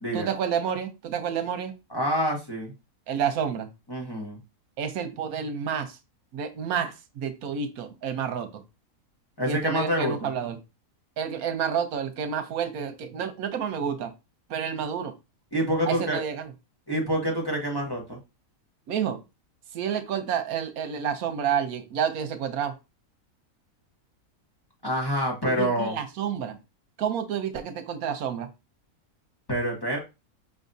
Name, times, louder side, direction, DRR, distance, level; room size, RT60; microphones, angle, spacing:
voice 1, 0.1-1.7 3.1-3.7 4.8-6.0 6.3-8.6 9.4-10.6 11.2-14.1 14.5-15.1 15.9-16.5 18.9-19.2 19.7-22.7 25.4-26.6 27.0-28.5, right 7 dB, 80° right, 1.2 m, -29 dB
voice 2, 1.9-2.7 3.9-4.4 9.4-10.3 15.5-16.2 16.9-18.2 24.8-26.0 29.5-30.0, equal, 15° left, 1.2 m, -27 dB
5.5 x 3.5 x 2.7 m
omnidirectional pair, 1.5 m